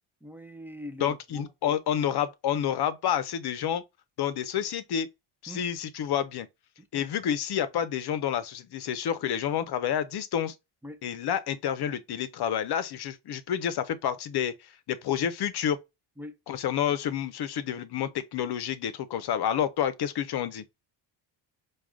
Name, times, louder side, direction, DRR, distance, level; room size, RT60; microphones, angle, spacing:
voice 1, 0.2-1.8 5.5-5.6 6.8-7.1 10.8-11.0 16.2-16.3, left 1 dB, 5° right, 0.4 m, -43 dB
voice 2, 1.0-3.8 4.2-5.1 5.4-6.5 6.9-10.5 11.0-15.8 16.5-20.6, left 9 dB, 50° left, 0.6 m, -29 dB
4.8 x 2.3 x 2.3 m
cardioid pair, 100°, 50 cm